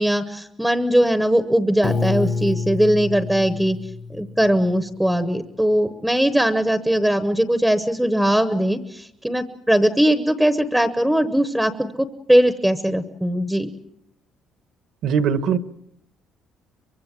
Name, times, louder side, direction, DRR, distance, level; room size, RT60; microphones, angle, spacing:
voice 1, 0.0-3.8 4.1-13.7, equal, 5° right, 11 dB, 0.9 m, -20 dB
Piano, 1.8-4.8, left 4 dB, 25° left, 0.9 m, -27 dB
voice 2, 15.0-15.6, right 7 dB, 60° right, 12 dB, 1.3 m, -20 dB
24.0 x 23.5 x 7.4 m, 0.76 s
cardioid pair, 175°, 0 cm